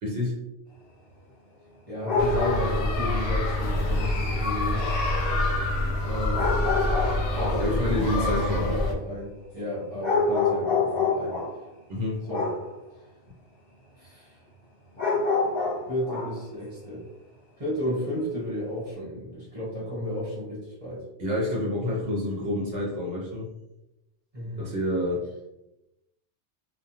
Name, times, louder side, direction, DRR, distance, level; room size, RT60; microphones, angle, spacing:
voice 1, 0.0-0.4 7.6-8.7 11.9-12.2 21.2-23.5 24.6-25.2, left 1 dB, 60° right, -4 dB, 0.9 m, -28 dB
voice 2, 1.9-4.9 6.0-6.5 7.3-11.4 12.3-12.5 14.0-14.3 15.9-17.0 17.6-21.1 24.3-24.6, left 1 dB, 30° right, -8 dB, 1.2 m, -33 dB
sound 1, 2.0-2.9 6.3-7.7 10.0-11.6 12.3-12.7 15.0-16.4, left 4 dB, 55° left, 1.1 m, -26 dB
sound 2, 2.2-8.9, left 2 dB, 80° left, 0.9 m, -26 dB
2.3 x 2.2 x 2.8 m, 0.92 s
omnidirectional pair, 1.2 m